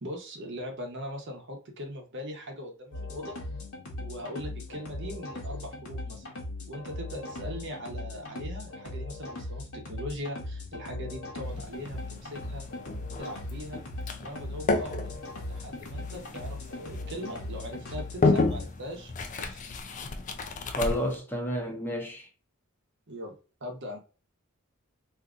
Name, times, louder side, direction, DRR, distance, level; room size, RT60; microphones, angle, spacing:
voice 1, 0.0-3.4 4.0-6.3 6.7-12.6 13.2-13.8 14.2-15.2 15.4-19.6 23.1-23.3 23.6-24.0, equal, 55° right, 0.9 m, -40 dB
sound 1, 2.9-18.7, left 2 dB, 70° left, 1.0 m, -39 dB
sound 2, 11.4-21.2, left 3 dB, 35° left, 0.4 m, -32 dB
voice 2, 20.7-22.3, equal, 10° left, 0.7 m, -31 dB
2.7 x 2.5 x 3.5 m
head